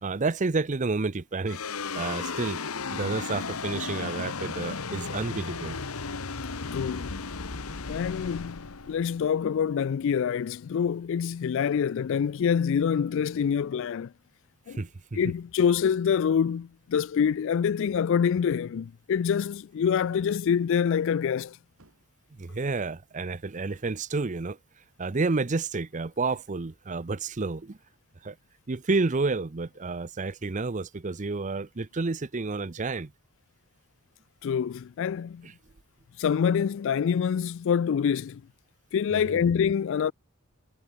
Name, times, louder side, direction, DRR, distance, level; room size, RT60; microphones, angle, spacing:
voice 1, 0.0-2.6 2.9-5.8 14.7-15.2 22.4-24.6 25.0-27.8 28.2-28.4 28.7-33.1 35.4-35.5 39.1-39.4, right 3 dB, 35° right, 0.6 m, -30 dB
sound 1, 1.5-10.0, left 4 dB, 80° left, 1.3 m, -35 dB
voice 2, 6.6-7.2 7.9-14.1 14.7-14.8 15.1-21.6 34.4-35.5 36.2-38.4 38.9-40.1, left 7 dB, 60° left, 0.3 m, -26 dB
sound 2, 20.4-20.9 21.8-22.2 23.7-24.0 25.0-25.5 26.2-26.5, right 2 dB, 70° right, 5.1 m, -63 dB
head